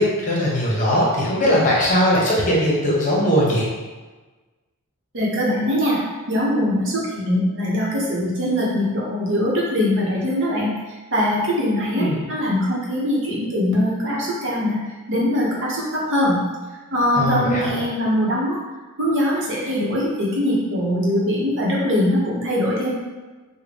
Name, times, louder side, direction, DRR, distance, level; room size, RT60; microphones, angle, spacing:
voice 1, 0.0-3.7 12.0-12.2 17.2-17.8, equal, 35° left, -5 dB, 0.9 m, -19 dB
voice 2, 5.1-6.0 6.3-10.7 11.1-14.8 15.1-16.4 16.9-18.6 19.0-22.9, left 1 dB, 55° right, -5 dB, 0.9 m, -22 dB
3.6 x 2.2 x 3.4 m, 1.3 s
head